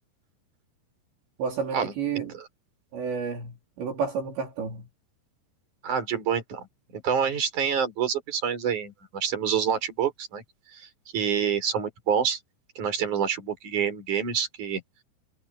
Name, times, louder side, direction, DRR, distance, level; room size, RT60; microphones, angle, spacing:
voice 1, 1.4-2.3 2.9-4.8, right 6 dB, 65° right, 6.1 m, -31 dB
voice 2, 5.8-6.7 6.9-10.4 10.7-12.4 12.8-14.8, right 7 dB, 40° right, 6.5 m, -27 dB
omnidirectional pair, 5.7 m